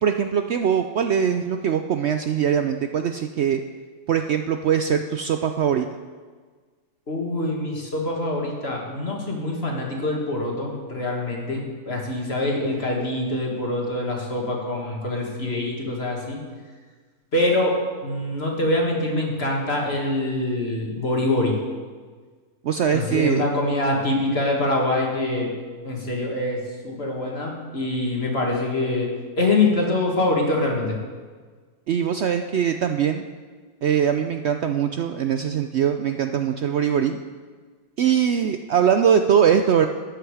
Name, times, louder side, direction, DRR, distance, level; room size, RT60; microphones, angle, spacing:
voice 1, 0.0-3.6 4.1-5.9 22.6-23.4 31.9-33.2 33.8-37.2 38.0-39.9, right 8 dB, 65° right, 7 dB, 0.7 m, -21 dB
voice 2, 7.1-16.4 17.3-17.8 18.0-21.5 22.9-25.5 25.8-29.1 29.4-31.0, left 2 dB, 40° left, -1 dB, 2.2 m, -24 dB
13.0 x 9.3 x 4.8 m, 1.5 s
omnidirectional pair, 1.6 m